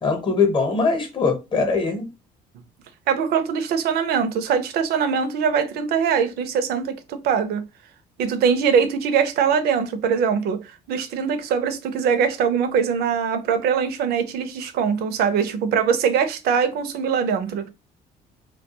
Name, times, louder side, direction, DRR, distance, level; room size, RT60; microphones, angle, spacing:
voice 1, 0.0-2.1, left 4 dB, 30° left, 0.8 m, -21 dB
voice 2, 3.1-7.6 8.2-17.7, right 7 dB, 70° right, 0.5 m, -22 dB
2.2 x 2.2 x 2.8 m
cardioid pair, 110°, 17 cm